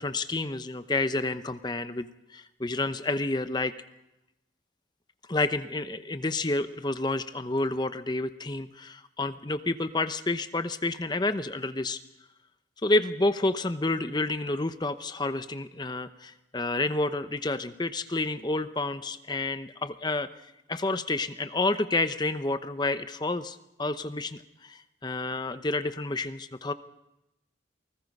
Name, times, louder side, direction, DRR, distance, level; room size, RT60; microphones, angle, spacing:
voice 1, 0.0-2.1 2.3-3.7 5.3-12.0 12.8-20.3 20.7-26.7, left 2 dB, 20° left, 11 dB, 0.8 m, -29 dB
28.0 x 20.0 x 5.4 m, 0.92 s
head